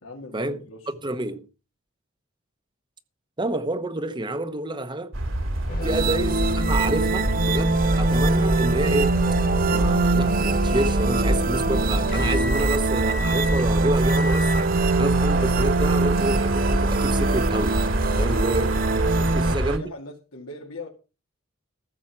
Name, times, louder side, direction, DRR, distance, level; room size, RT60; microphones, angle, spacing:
voice 1, 0.0-0.9 5.8-6.0 19.1-20.9, left 2 dB, 85° left, 2.4 m, -40 dB
voice 2, 1.0-1.5 3.4-5.1 5.8-9.2 9.7-17.8 18.2-19.8, right 1 dB, 20° right, 0.9 m, -28 dB
sound 1, 5.1-19.8, right 1 dB, 65° right, 2.1 m, -26 dB
sound 2, 5.7-14.9, left 2 dB, 45° left, 1.9 m, -35 dB
sound 3, 5.8-19.5, right 3 dB, 45° right, 0.5 m, -24 dB
14.5 x 7.2 x 6.0 m
head